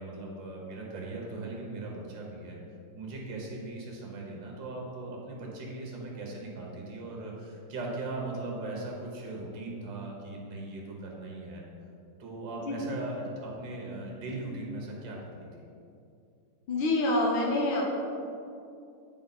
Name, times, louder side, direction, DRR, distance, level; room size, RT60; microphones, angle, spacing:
voice 1, 0.0-2.6 2.9-11.6 12.2-15.5, right 2 dB, 65° right, -2 dB, 1.9 m, -39 dB
voice 2, 16.7-17.8, left 2 dB, 75° left, -2 dB, 1.9 m, -26 dB
9.3 x 4.1 x 4.1 m, 2.5 s
omnidirectional pair, 2.2 m